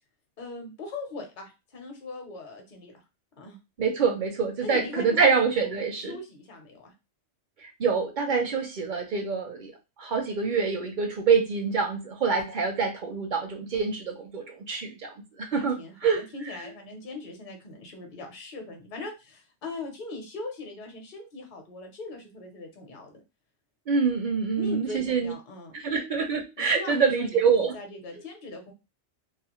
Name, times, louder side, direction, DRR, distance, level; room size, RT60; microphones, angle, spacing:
voice 1, 0.4-3.0 3.4-3.6 4.6-6.9 15.5-23.2 24.6-25.8 26.6-28.7, left 3 dB, 45° left, 3 dB, 0.8 m, -40 dB
voice 2, 3.8-6.2 7.6-9.7 10.0-16.2 23.9-25.3 25.7-27.7, right 5 dB, 55° right, 3 dB, 0.6 m, -26 dB
2.5 x 2.4 x 2.9 m, 0.27 s
omnidirectional pair, 1.2 m